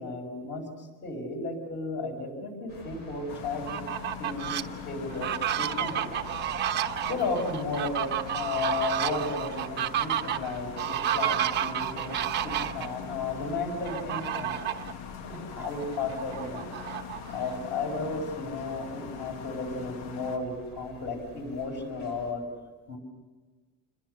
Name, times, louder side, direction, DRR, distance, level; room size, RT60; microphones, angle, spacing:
voice 1, 0.0-3.8 4.2-4.5 4.9-6.1 7.1-12.2 12.4-14.5 15.2-16.7 17.3-22.4 22.9-23.0, left 3 dB, 30° left, 3 dB, 5.5 m, -34 dB
sound 1, 2.7-22.3, left 3 dB, 70° left, 7.9 m, -48 dB
sound 2, 3.3-20.4, left 8 dB, 50° left, 1.2 m, -43 dB
Fowl, 3.5-4.6 5.1-12.9 13.8-14.9 15.3-15.4 15.8-17.5, right 10 dB, 30° right, 1.0 m, -31 dB
28.0 x 21.5 x 6.6 m, 1.3 s
cardioid pair, 180°, 34 cm